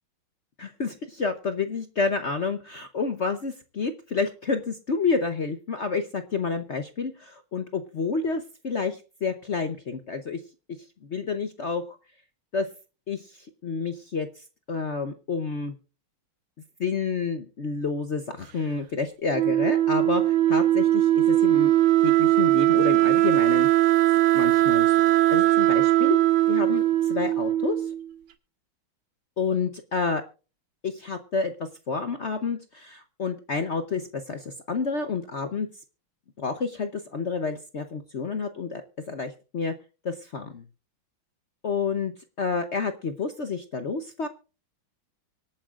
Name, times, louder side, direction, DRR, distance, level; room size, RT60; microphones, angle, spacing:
voice 1, 0.6-10.4 11.0-11.8 12.5-12.7 13.1-15.7 16.8-21.7 22.0-23.7 24.3-25.0 25.3-26.2 26.5-27.9 29.4-30.2 30.8-31.5 31.9-35.7 36.4-39.7 40.0-40.6 41.6-42.1 42.4-44.3, left 4 dB, 55° left, 8 dB, 0.8 m, -29 dB
Wind instrument woodwind instrument, 19.3-28.1, right 14 dB, 90° right, 1.9 m, -20 dB
25.0 x 8.8 x 2.5 m, 0.33 s
omnidirectional pair, 2.2 m